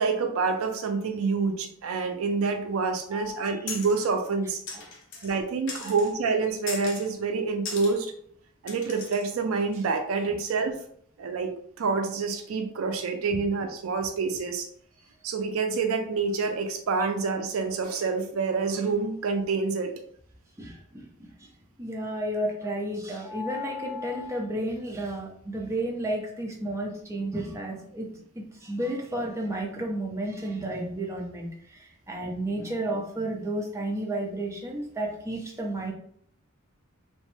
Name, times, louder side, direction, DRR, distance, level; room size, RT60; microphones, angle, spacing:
voice 1, 0.0-4.6 5.2-8.1 8.6-10.8 11.2-14.7 15.2-19.9, right 4 dB, 70° right, 6 dB, 0.4 m, -27 dB
voice 2, 3.1-3.5 4.7-5.2 5.8-6.0 17.0-17.1 20.6-21.5 21.8-28.1 28.3-35.9, right 1 dB, 15° right, -1 dB, 0.6 m, -32 dB
sound 1, 3.7-4.1 4.7-5.4 5.7-6.1 6.7-7.1 7.7-7.9 8.7-9.3, left 4 dB, 60° left, 0.6 m, -38 dB
2.9 x 2.1 x 3.1 m, 0.64 s
head